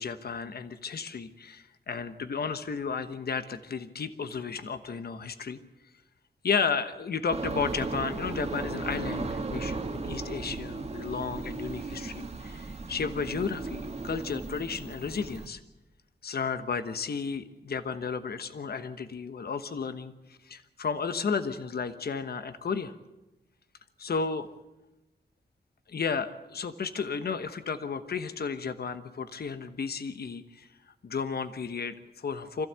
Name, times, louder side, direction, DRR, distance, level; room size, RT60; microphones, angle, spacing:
voice 1, 0.0-5.6 6.4-15.6 16.2-20.1 20.4-23.0 24.0-24.5 25.9-30.7 31.0-32.7, left 5 dB, 65° left, 10 dB, 1.1 m, -33 dB
sound 1, 7.3-15.5, right 3 dB, 35° right, 1.7 m, -36 dB
25.0 x 15.5 x 8.2 m, 1.0 s
wide cardioid pair, 120°, 18 cm